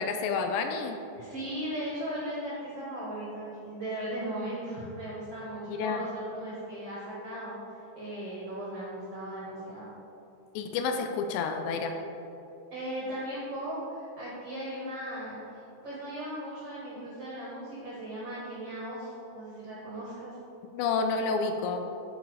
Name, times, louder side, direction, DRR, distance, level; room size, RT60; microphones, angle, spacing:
voice 1, 0.0-1.0 5.7-6.0 10.6-12.0 20.7-21.8, left 4 dB, 80° left, 5 dB, 2.6 m, -29 dB
voice 2, 1.1-9.9 12.7-15.4 15.8-20.4, right 1 dB, 85° right, -7 dB, 1.3 m, -37 dB
8.4 x 5.3 x 4.8 m, 2.9 s
omnidirectional pair, 5.2 m